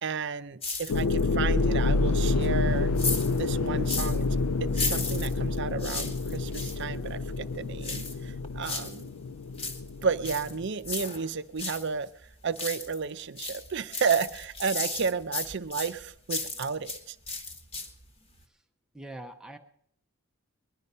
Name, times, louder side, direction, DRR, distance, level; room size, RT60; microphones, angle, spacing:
voice 1, 0.0-2.9 3.4-4.3 4.6-9.1 10.0-12.1 12.4-17.2, right 5 dB, 50° right, 12 dB, 0.5 m, -32 dB
sound 1, 0.6-1.3 1.7-4.2 4.7-6.8 7.8-9.0 9.4-11.9 12.2-13.0 13.4-17.0 17.3-18.1 18.4-18.5, left 3 dB, 25° left, 1.3 m, -35 dB
sound 2, 0.9-10.7, left 3 dB, 80° left, 0.5 m, -28 dB
voice 2, 18.9-19.6, right 1 dB, 5° right, 6 dB, 0.6 m, -42 dB
20.5 x 11.0 x 5.5 m, 0.71 s
head